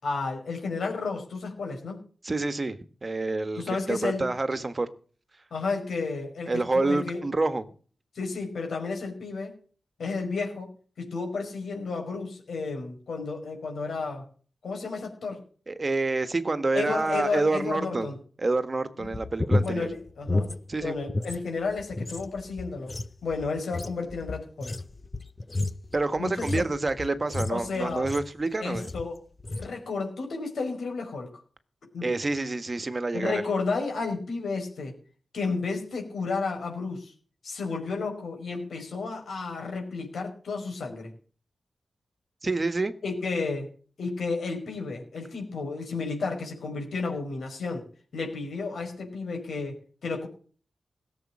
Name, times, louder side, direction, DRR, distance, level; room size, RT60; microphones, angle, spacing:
voice 1, 0.0-2.0 3.6-4.3 5.5-7.2 8.1-9.6 10.0-14.2 14.6-15.4 16.7-18.2 19.0-19.2 19.6-20.5 20.8-23.0 23.2-24.8 26.2-26.6 27.5-28.1 28.6-29.2 29.5-31.3 31.9-32.1 33.1-34.9 35.3-37.1 37.4-41.1 43.0-43.7 44.0-47.9 48.1-50.3, left 4 dB, 80° left, 5.2 m, -32 dB
voice 2, 2.2-4.9 6.5-7.6 15.7-18.1 18.4-19.9 20.7-21.0 25.9-28.9 32.0-33.4 42.4-42.9, right 3 dB, 35° right, 1.4 m, -28 dB
sound 1, 19.0-21.4 21.7-28.4 28.7-29.1 29.4-29.7, left 2 dB, 30° left, 0.7 m, -32 dB
16.5 x 7.5 x 7.4 m
wide cardioid pair, 90°, 0 cm